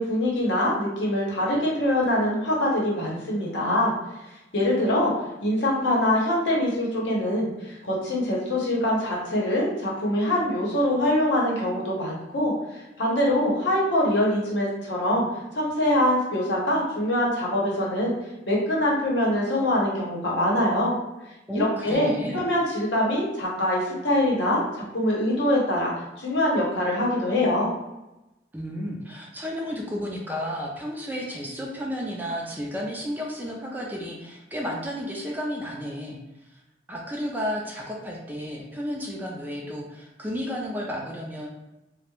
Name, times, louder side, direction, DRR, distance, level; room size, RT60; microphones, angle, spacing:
voice 1, 0.0-3.9 4.5-5.1 5.4-15.3 15.5-18.1 18.5-20.9 21.5-27.7, left 1 dB, 75° left, -4 dB, 0.8 m, -24 dB
voice 2, 21.5-22.4 28.5-36.2 36.9-41.5, equal, 10° right, -2 dB, 0.3 m, -32 dB
2.2 x 2.0 x 2.9 m, 0.97 s
head